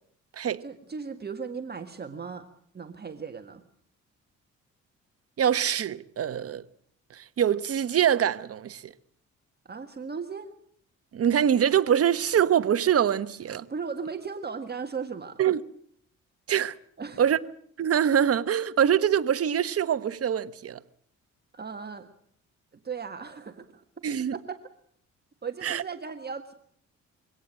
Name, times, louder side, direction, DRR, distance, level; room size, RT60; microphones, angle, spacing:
voice 1, 0.6-2.5 2.7-3.6 9.6-10.5 13.7-15.4 17.0-17.2 21.5-22.1 22.8-23.8 24.3-24.6 25.4-26.5, right 5 dB, 35° right, 1.7 m, -36 dB
voice 2, 5.4-6.6 7.2-8.9 11.1-13.7 15.4-15.6 16.5-16.7 17.2-17.4 17.8-20.8 24.0-24.3 25.6-25.8, right 9 dB, 50° right, 1.1 m, -24 dB
23.0 x 17.5 x 7.6 m
cardioid pair, 90°, 30 cm